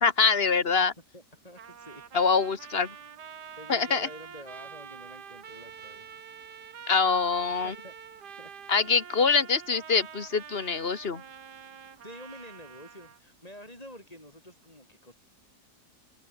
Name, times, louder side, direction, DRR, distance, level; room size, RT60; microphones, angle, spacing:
voice 1, 0.0-0.9 2.1-3.0 3.7-4.1 6.9-7.8 8.7-11.2, left 5 dB, 35° left, 1.8 m, -24 dB
voice 2, 1.1-2.0 3.6-6.3 7.6-7.9 8.4-8.5 12.0-15.1, equal, 20° left, 8.0 m, -48 dB
Trumpet, 1.6-13.2, right 7 dB, 80° right, 2.1 m, -46 dB
omnidirectional pair, 1.8 m